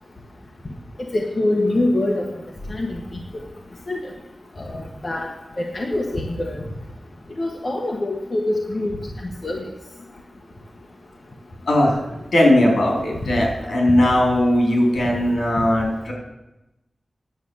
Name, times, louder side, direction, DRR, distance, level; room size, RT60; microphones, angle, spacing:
voice 1, 1.1-2.2 2.7-3.2 3.9-4.0 4.6-5.3 5.6-6.6 7.4-8.9 9.4-9.6 13.9-14.0 15.0-15.1, left 1 dB, 40° left, 0 dB, 1.4 m, -24 dB
voice 2, 11.6-12.0 12.3-16.1, left 1 dB, 75° left, -1 dB, 4.0 m, -18 dB
10.5 x 8.0 x 7.2 m, 0.96 s
wide cardioid pair, 95°, 0 cm